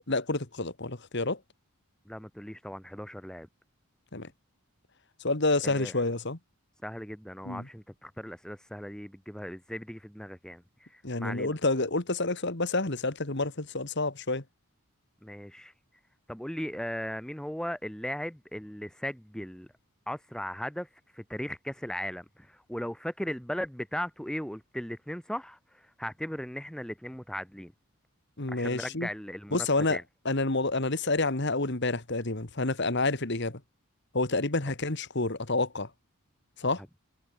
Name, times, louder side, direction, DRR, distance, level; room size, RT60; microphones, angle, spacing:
voice 1, 0.1-1.4 4.1-4.3 5.2-6.4 7.4-7.7 11.0-14.4 28.4-29.1 29.5-30.0 30.3-33.6 34.1-35.9 36.6-36.8, left 2 dB, 50° left, 2.0 m, -28 dB
voice 2, 2.1-3.5 5.6-6.0 6.8-11.5 15.2-15.7 16.3-19.7 20.1-27.7 28.5-30.0, equal, 5° left, 0.9 m, -37 dB
head